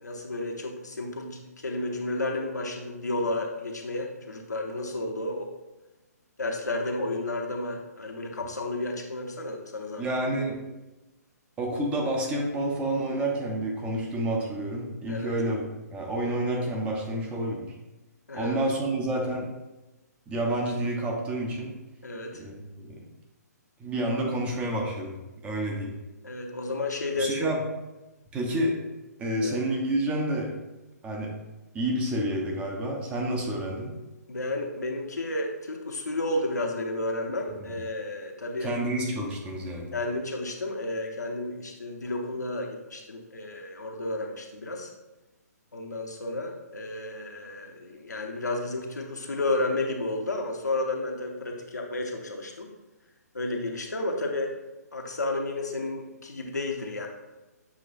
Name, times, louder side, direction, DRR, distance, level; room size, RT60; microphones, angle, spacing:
voice 1, 0.0-5.5 6.4-10.1 15.1-15.3 18.3-18.6 22.0-22.4 26.2-27.4 29.4-29.6 34.3-38.7 39.9-44.9 45.7-52.7 53.3-54.5 54.9-57.1, left 2 dB, 75° left, 2 dB, 0.8 m, -32 dB
voice 2, 10.0-10.6 11.6-17.7 18.3-19.5 20.3-21.8 22.3-23.0 23.8-25.2 25.4-26.0 27.2-27.6 28.3-28.8 29.2-30.6 31.0-31.4 31.7-33.9 38.6-39.9, right 1 dB, 10° right, 0 dB, 0.6 m, -29 dB
7.1 x 3.0 x 2.5 m, 1.1 s
figure-of-eight pair, 130°, 9 cm